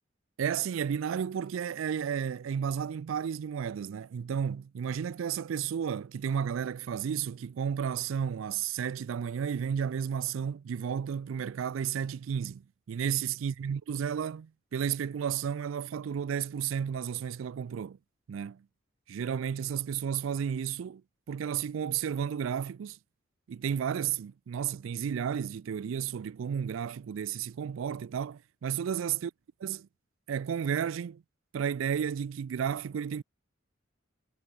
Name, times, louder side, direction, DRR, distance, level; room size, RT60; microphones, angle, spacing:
voice 1, 0.4-12.6 12.9-18.0 18.3-18.6 19.1-21.0 21.3-23.0 23.5-29.3 29.6-29.9 30.3-31.2 31.5-33.2, right 8 dB, 75° right, 0.4 m, -32 dB
head